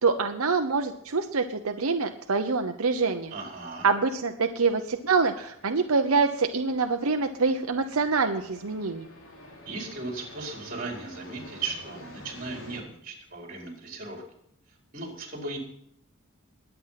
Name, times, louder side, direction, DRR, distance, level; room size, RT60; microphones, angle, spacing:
voice 1, 0.0-3.3 3.8-9.1, right 4 dB, 80° right, 6 dB, 0.9 m, -25 dB
sound 1, 2.6-12.8, left 1 dB, 65° left, 3.4 m, -50 dB
voice 2, 3.3-3.9 9.7-14.2 14.9-15.6, right 3 dB, 40° right, 0 dB, 4.6 m, -37 dB
21.0 x 9.1 x 5.9 m, 0.71 s
head